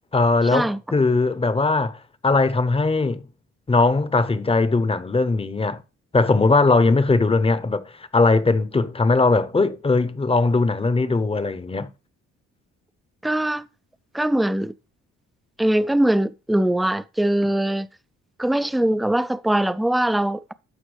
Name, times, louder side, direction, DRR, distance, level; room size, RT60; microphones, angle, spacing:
voice 1, 0.1-3.2 3.7-5.8 6.1-7.8 8.1-11.9, left 3 dB, 20° left, 0.7 m, -20 dB
voice 2, 13.2-13.7 14.1-14.7 15.6-17.9 18.4-20.5, right 1 dB, ahead, 0.3 m, -21 dB
12.5 x 4.5 x 3.2 m
cardioid pair, 90°, 30 cm